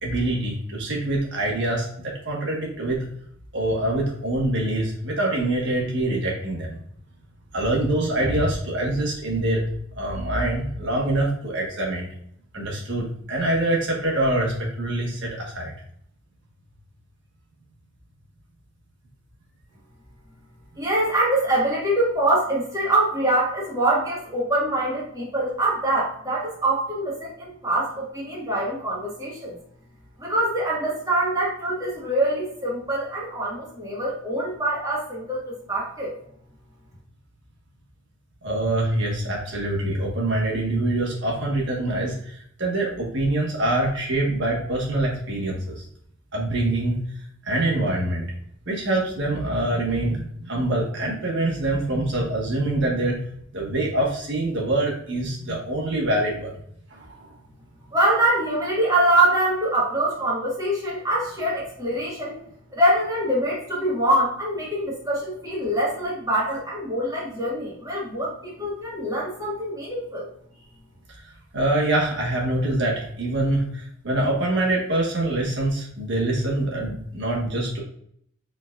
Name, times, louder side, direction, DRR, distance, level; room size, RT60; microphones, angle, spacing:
voice 1, 0.0-3.1 3.5-6.8 7.5-9.6 9.9-12.1 12.5-15.7 38.4-45.8 46.3-47.0 47.4-48.3 48.7-53.2 53.5-56.5 56.9-57.3 71.1-71.2 71.5-77.8, right 1 dB, 65° right, -3 dB, 1.5 m, -25 dB
voice 2, 20.8-29.6 30.2-36.1 57.9-62.4 62.7-70.3, right 1 dB, 20° right, -5 dB, 1.6 m, -24 dB
4.6 x 3.9 x 2.5 m, 0.67 s
head